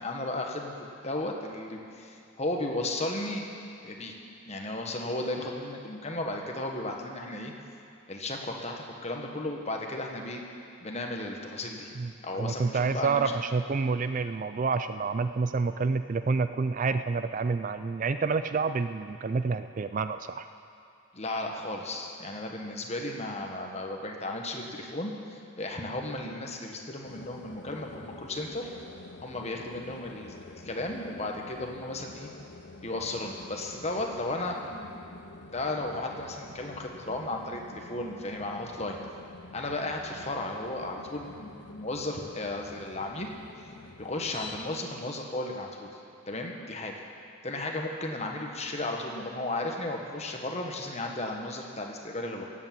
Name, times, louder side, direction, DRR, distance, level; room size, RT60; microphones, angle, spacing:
voice 1, 0.0-3.5 3.8-4.1 4.5-7.5 8.1-10.4 10.8-11.9 12.2-13.3 21.1-28.7 29.2-32.3 32.8-34.9 35.5-39.0 39.5-43.3 44.0-45.9 46.3-47.0 47.4-52.5, left 2 dB, 30° left, 1 dB, 1.4 m, -34 dB
voice 2, 12.0-20.5, right 4 dB, 40° right, 11 dB, 0.3 m, -28 dB
sound 1, 27.0-44.8, left 3 dB, 55° left, 0.8 m, -48 dB
17.5 x 8.6 x 7.6 m, 2.7 s
head